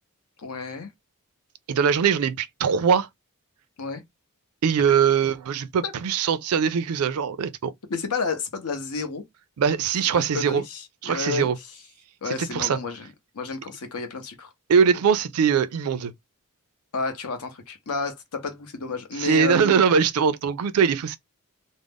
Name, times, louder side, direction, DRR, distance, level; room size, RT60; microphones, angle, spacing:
voice 1, 0.4-0.9 3.8-4.0 5.8-5.9 7.9-9.2 10.1-11.5 12.2-13.1 13.3-14.5 16.9-19.8, left 4 dB, 80° left, 0.7 m, -31 dB
voice 2, 1.7-3.1 4.6-7.7 9.6-10.6 11.0-11.6 12.3-12.8 14.7-16.1 19.2-21.2, right 6 dB, 75° right, 0.4 m, -21 dB
2.4 x 2.0 x 3.4 m
head